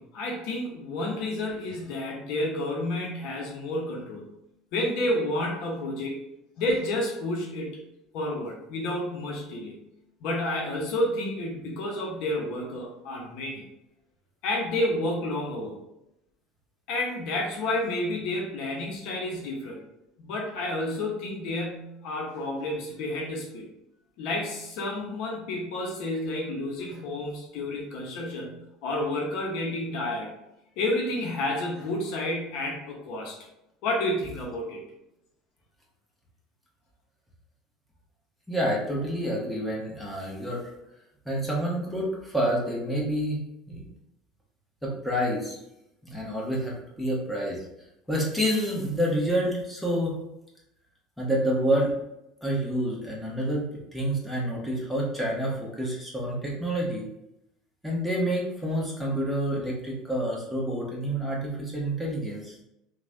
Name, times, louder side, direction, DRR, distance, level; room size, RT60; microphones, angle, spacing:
voice 1, 0.0-4.3 4.7-6.2 6.6-7.8 8.1-9.8 10.2-13.6 14.4-15.8 16.9-19.8 20.2-23.7 24.2-28.5 28.8-30.3 30.8-33.4 33.8-34.8, left 1 dB, 65° left, -1 dB, 0.7 m, -30 dB
voice 2, 38.5-40.6 41.2-43.4 43.7-43.8 44.8-45.6 46.0-47.6 48.1-50.1 51.2-51.9 52.4-53.7 53.9-57.1 57.8-62.6, equal, ahead, -4 dB, 1.1 m, -28 dB
3.1 x 2.2 x 2.5 m, 0.84 s
hypercardioid pair, 75°, 0 cm